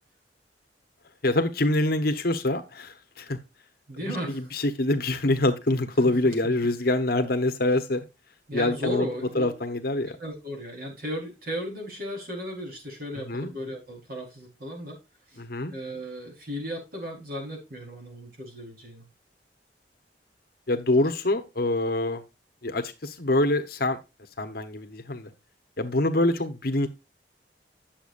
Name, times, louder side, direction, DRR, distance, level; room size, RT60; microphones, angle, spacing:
voice 1, 1.2-3.4 4.3-8.0 8.5-9.1 9.3-10.1 13.3-13.5 15.4-15.7 20.7-22.2 22.6-24.0 24.4-25.3 25.8-26.9, left 2 dB, 60° left, 7 dB, 1.1 m, -25 dB
voice 2, 3.9-4.5 8.5-9.5 10.1-15.0 15.3-15.4 15.7-19.0, equal, 55° right, 1 dB, 4.3 m, -35 dB
10.5 x 7.4 x 2.5 m, 0.26 s
head